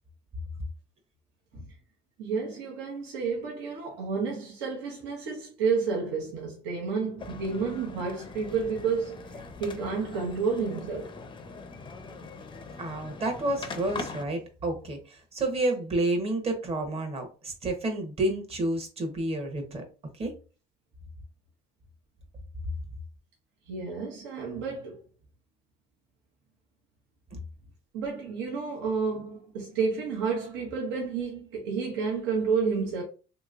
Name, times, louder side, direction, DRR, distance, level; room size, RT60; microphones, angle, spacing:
voice 1, 2.2-11.1 23.7-25.0 27.9-33.0, right 5 dB, 80° right, 1.1 m, -30 dB
sound 1, 7.2-14.2, left 4 dB, 25° left, 0.5 m, -42 dB
voice 2, 12.8-19.8 20.2-20.3, right 2 dB, 30° right, 0.9 m, -30 dB
3.0 x 2.9 x 2.4 m
cardioid pair, 115°, 19 cm